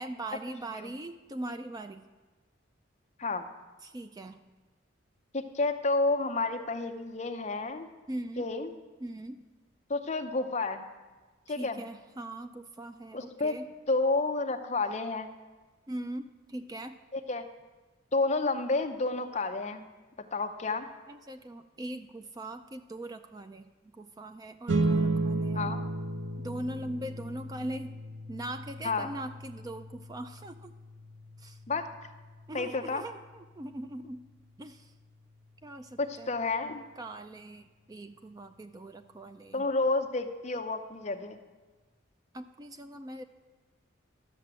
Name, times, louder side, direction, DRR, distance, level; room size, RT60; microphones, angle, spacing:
voice 1, 0.0-2.0 3.8-4.4 8.1-8.5 9.0-9.4 11.5-13.7 15.9-17.0 21.1-23.6 23.9-25.7 26.4-28.0 28.3-30.7 31.4-31.6 32.5-34.3 34.6-34.9 35.6-36.3 37.0-39.7 42.3-43.2, right 1 dB, 20° right, 8 dB, 0.3 m, -41 dB
voice 2, 5.3-7.9 8.4-8.7 9.9-10.9 11.5-11.8 13.1-13.6 13.9-15.3 17.1-17.4 18.1-19.9 20.3-20.9 25.5-25.9 28.8-29.1 31.7-31.9 32.5-33.0 36.0-36.8 39.5-41.4, left 3 dB, 35° left, 6 dB, 0.7 m, -30 dB
sound 1, 24.7-35.4, right 2 dB, 65° right, 0.7 m, -35 dB
12.0 x 6.8 x 7.5 m, 1.3 s
head